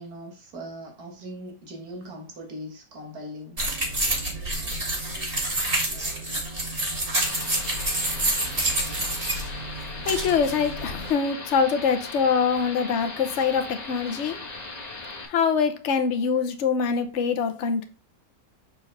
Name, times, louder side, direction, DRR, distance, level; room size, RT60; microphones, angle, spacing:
voice 1, 0.0-3.6, equal, 85° right, 2.0 m, -40 dB
sound 1, 3.6-11.1, right 1 dB, 40° right, 2.3 m, -28 dB
sound 2, 7.3-15.3, left 3 dB, 30° left, 1.4 m, -38 dB
voice 2, 10.0-14.4 15.3-17.8, left 6 dB, 55° left, 1.1 m, -24 dB
6.8 x 4.6 x 3.3 m
omnidirectional pair, 1.6 m